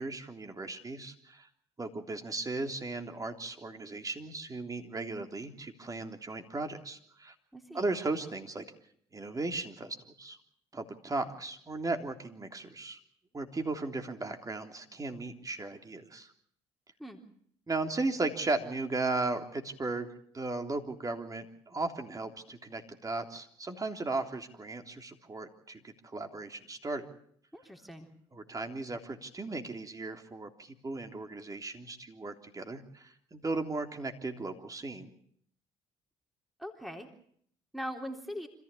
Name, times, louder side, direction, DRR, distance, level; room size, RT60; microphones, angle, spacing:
voice 1, 0.0-1.5 1.8-7.3 7.7-8.6 9.1-10.4 10.7-13.0 13.3-16.3 17.7-20.1 20.3-27.1 28.3-35.1, right 3 dB, 25° right, 4 dB, 3.4 m, -36 dB
voice 2, 7.5-7.9 17.0-17.2 27.5-28.1 36.6-37.1 37.7-38.5, equal, ahead, 3 dB, 3.6 m, -41 dB
26.5 x 15.0 x 8.5 m, 0.65 s
hypercardioid pair, 60°, 13 cm